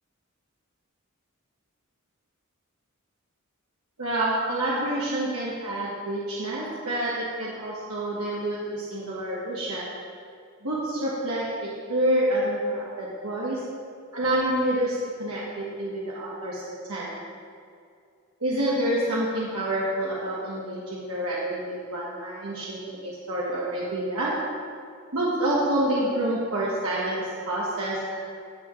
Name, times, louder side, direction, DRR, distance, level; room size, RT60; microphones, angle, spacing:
voice 1, 4.0-9.9 10.6-13.6 14.1-16.6 16.9-17.1 18.4-24.3 25.1-28.1, right 1 dB, 90° right, -7 dB, 1.5 m, -28 dB
16.5 x 6.0 x 3.2 m, 2.4 s
head